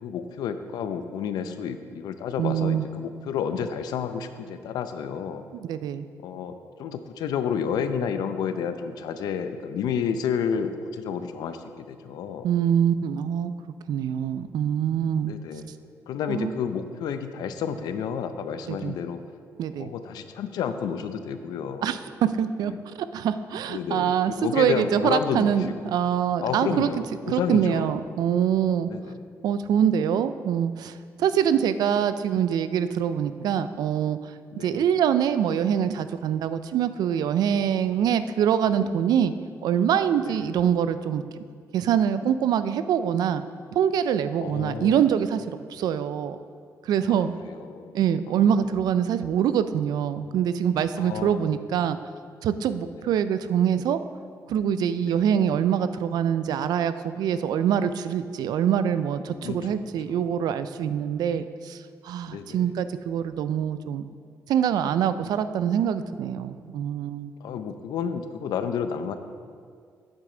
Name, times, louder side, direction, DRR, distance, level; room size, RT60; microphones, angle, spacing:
voice 1, 0.0-5.4 6.2-12.5 15.2-15.7 16.1-19.2 19.8-21.9 22.6-22.8 23.7-26.1 26.4-28.0 28.9-29.2 34.5-34.9 40.2-40.5 44.4-45.0 47.1-47.9 50.9-51.5 55.0-55.2 59.4-60.3 62.3-62.7 67.4-69.2, left 7 dB, 85° left, 9 dB, 0.5 m, -31 dB
voice 2, 2.4-2.9 5.5-6.1 12.4-13.5 13.9-15.3 16.3-16.5 18.7-19.0 19.6-19.9 21.8-26.9 27.3-28.9 29.4-39.3 39.6-41.2 41.7-43.4 43.7-45.4 45.7-46.4 46.8-47.3 47.9-52.0 52.4-54.0 54.5-61.8 62.0-64.1 64.5-67.3, right 9 dB, 80° right, 12 dB, 0.4 m, -24 dB
8.7 x 8.2 x 3.8 m, 2.1 s
cardioid pair, 95°, 7 cm